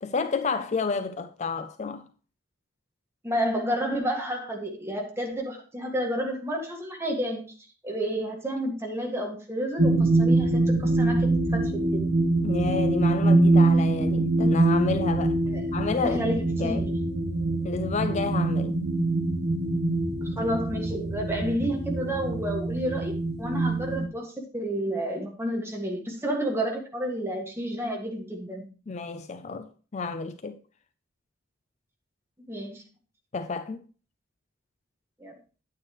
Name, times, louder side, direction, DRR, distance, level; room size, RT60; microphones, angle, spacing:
voice 1, 0.0-2.1 12.4-15.4 15.7-16.3 16.6-16.9 17.6-18.8 28.9-30.6 33.3-33.8, left 4 dB, 35° left, 0.4 m, -30 dB
voice 2, 3.2-7.4 7.8-12.1 15.5-15.6 16.0-16.9 20.2-23.1 23.4-28.7 32.5-32.8 35.2-35.3, equal, 10° right, 1.8 m, -30 dB
sound 1, 9.8-24.1, right 2 dB, 55° right, 1.2 m, -24 dB
9.3 x 9.0 x 3.0 m
head